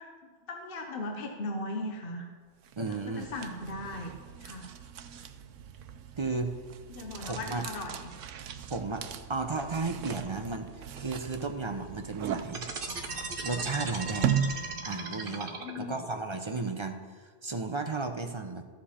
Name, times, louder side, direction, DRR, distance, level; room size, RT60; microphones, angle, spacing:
voice 1, 0.0-2.3 2.9-4.1 4.4-4.7 6.9-8.1 15.6-16.0, left 2 dB, 50° left, 3 dB, 1.1 m, -38 dB
sound 1, 2.6-15.0, right 8 dB, 85° right, 1.0 m, -38 dB
voice 2, 2.8-3.3 6.2-6.5 7.2-7.6 8.7-9.0 9.3-10.7 11.0-12.6 13.4-14.3 14.8-18.7, right 3 dB, 30° right, 6 dB, 0.6 m, -34 dB
sound 2, 12.5-16.0, right 4 dB, 50° right, 1.2 m, -37 dB
14.0 x 7.5 x 4.3 m, 1.5 s
omnidirectional pair, 1.2 m